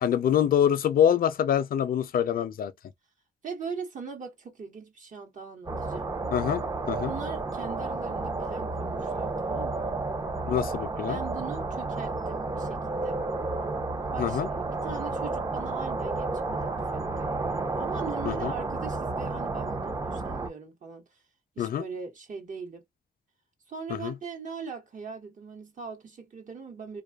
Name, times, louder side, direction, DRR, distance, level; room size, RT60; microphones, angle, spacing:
voice 1, 0.0-2.7 6.3-6.6 6.9-7.1 10.5-11.2 14.2-14.5 18.3-18.5 21.6-21.8 23.9-24.1, left 9 dB, 65° left, 0.4 m, -25 dB
voice 2, 3.4-6.1 7.0-10.0 11.1-13.2 14.1-17.3 17.7-21.2 21.6-22.8 23.7-27.0, right 5 dB, 50° right, 1.0 m, -40 dB
sound 1, 5.7-20.5, right 3 dB, 20° right, 0.5 m, -31 dB
2.5 x 2.3 x 2.3 m
cardioid pair, 80°, 16 cm